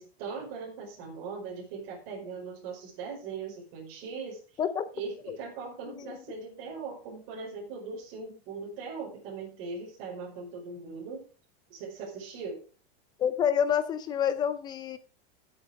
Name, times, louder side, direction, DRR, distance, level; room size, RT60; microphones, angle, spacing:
voice 1, 0.0-4.4 4.9-11.3 11.7-12.6, right 4 dB, 40° right, -2 dB, 4.9 m, -40 dB
voice 2, 13.2-15.0, left 8 dB, 15° left, 12 dB, 0.4 m, -28 dB
16.0 x 7.7 x 3.6 m, 0.35 s
supercardioid pair, 170°, 30 cm